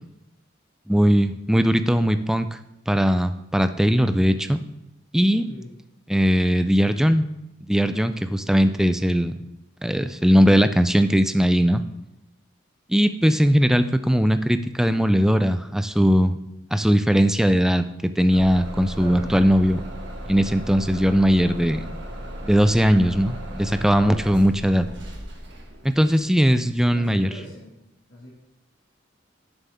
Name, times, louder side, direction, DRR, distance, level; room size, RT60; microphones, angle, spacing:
voice 1, 0.9-2.5 2.9-4.6 5.1-5.5 6.1-7.2 7.7-9.3 9.8-11.8 12.9-16.4 16.7-19.8 20.3-21.8 22.4-24.9 25.8-27.3, equal, 5° right, 10 dB, 0.3 m, -19 dB
voice 2, 5.5-5.8 19.0-19.4 26.0-26.2 26.9-27.7 28.1-28.3, equal, 65° left, -5 dB, 2.2 m, -40 dB
Bus / Engine starting, 18.3-26.1, equal, 60° right, 1.5 m, -36 dB
11.0 x 7.2 x 3.5 m, 0.92 s
head